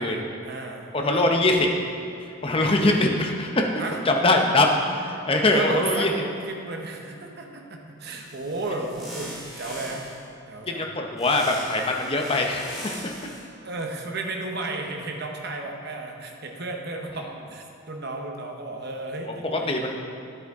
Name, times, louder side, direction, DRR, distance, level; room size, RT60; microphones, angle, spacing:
voice 1, 0.0-1.3 3.8-4.0 5.4-6.1 6.5-10.1 10.5-10.9 12.9-13.0 13.6-20.0, right 2 dB, 50° right, 2 dB, 0.9 m, -33 dB
voice 2, 0.9-1.7 2.4-3.7 4.1-6.3 10.7-13.1 19.5-20.0, left 2 dB, 25° left, 2 dB, 0.7 m, -22 dB
sound 1, 8.0-10.3 11.2-13.5, equal, ahead, 1.7 m, -40 dB
10.0 x 8.0 x 3.6 m, 2.6 s
head